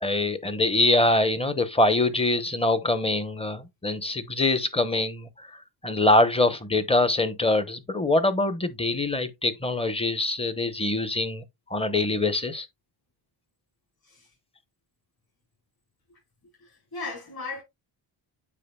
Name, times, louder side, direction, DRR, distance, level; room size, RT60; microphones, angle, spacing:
voice 1, 0.0-5.3 5.8-11.4 11.7-12.7, left 2 dB, 10° left, 0.8 m, -24 dB
voice 2, 16.6-17.6, left 4 dB, 45° left, 4.2 m, -37 dB
8.5 x 5.1 x 2.2 m
cardioid pair, 105°, 50 cm